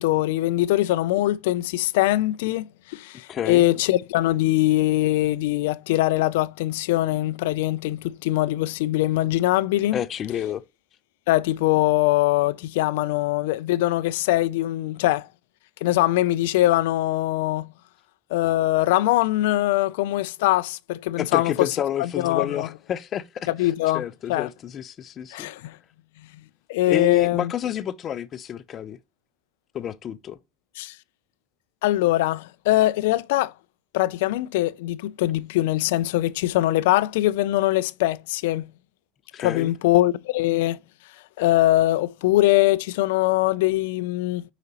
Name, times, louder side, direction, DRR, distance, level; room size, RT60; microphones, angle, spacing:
voice 1, 0.0-10.0 11.3-15.3 15.8-17.7 18.3-21.7 22.0-22.7 23.5-24.5 25.3-25.8 26.7-27.5 30.8-31.0 31.8-33.5 33.9-38.7 39.4-40.8 41.4-44.4, left 16 dB, 90° left, 0.3 m, -22 dB
voice 2, 3.3-3.6 9.9-10.6 21.2-25.5 26.9-29.0 29.7-30.4 39.3-39.7, left 10 dB, 30° left, 0.5 m, -29 dB
6.6 x 5.0 x 2.9 m
cardioid pair, 155°, 0 cm